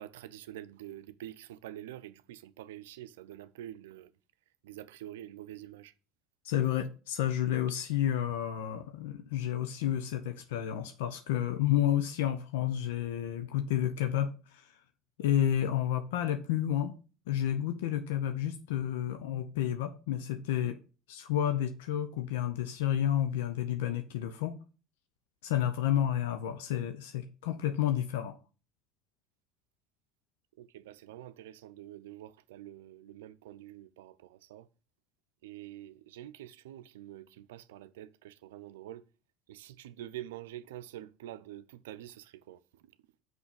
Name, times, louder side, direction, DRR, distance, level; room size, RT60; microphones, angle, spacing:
voice 1, 0.0-4.1 4.6-5.9 30.6-34.7 35.4-39.0 39.5-42.6, right 13 dB, 80° right, 0.6 m, -46 dB
voice 2, 6.4-14.7 15.2-17.0 17.3-20.8 21.1-24.6 25.4-28.4, left 11 dB, 80° left, 0.7 m, -30 dB
6.2 x 5.5 x 6.9 m
hypercardioid pair, 75°, 0 cm